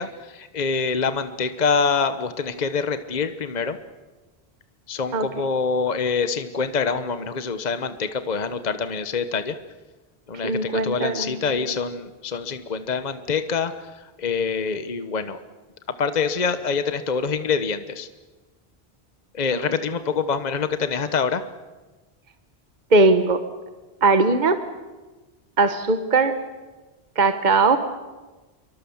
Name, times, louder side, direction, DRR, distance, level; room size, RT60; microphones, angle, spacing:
voice 1, 0.0-3.8 4.9-9.5 10.3-15.4 16.0-18.1 19.3-21.4, left 5 dB, 45° left, 10 dB, 1.1 m, -25 dB
voice 2, 10.4-11.6 22.9-23.4 24.0-24.6 25.6-26.3 27.2-27.8, right 3 dB, 45° right, 9 dB, 1.3 m, -19 dB
28.0 x 24.0 x 7.2 m, 1.2 s
omnidirectional pair, 1.1 m